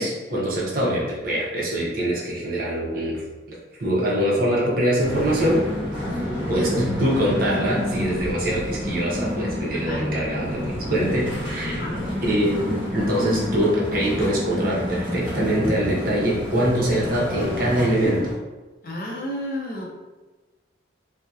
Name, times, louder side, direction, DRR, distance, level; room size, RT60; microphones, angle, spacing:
voice 1, 0.0-3.2 3.8-5.6 6.5-11.9 12.2-18.3, right 1 dB, 50° right, -4 dB, 0.6 m, -23 dB
sound 1, 5.0-18.3, left 1 dB, 5° right, 0.7 m, -29 dB
voice 2, 6.0-6.5 9.7-10.0 11.6-12.1 18.8-19.8, equal, 45° left, -3 dB, 0.5 m, -32 dB
2.7 x 2.0 x 2.3 m, 1.2 s
head